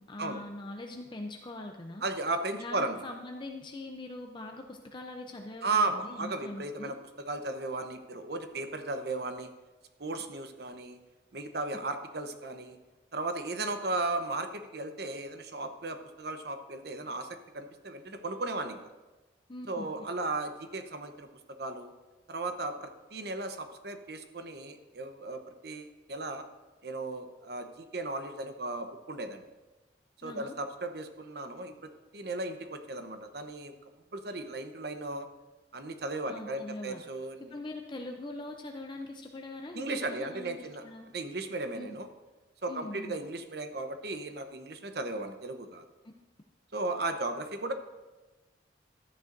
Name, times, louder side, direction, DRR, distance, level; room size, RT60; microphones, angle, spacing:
voice 1, 0.0-2.0 2.6-6.9 19.5-20.0 30.2-30.5 36.3-37.0 37.5-41.1 41.7-41.9 42.7-43.2, left 2 dB, 25° left, 3 dB, 0.6 m, -42 dB
voice 2, 2.0-3.0 5.6-9.5 10.0-11.0 11.3-12.8 13.1-17.3 17.5-18.8 19.7-21.9 22.3-26.4 26.8-29.4 30.2-31.7 32.1-33.7 34.1-35.3 35.7-37.6 39.7-40.8 41.1-42.1 42.6-45.8 46.7-47.7, right 2 dB, 60° right, 7 dB, 0.9 m, -35 dB
13.0 x 9.2 x 2.6 m, 1.2 s
head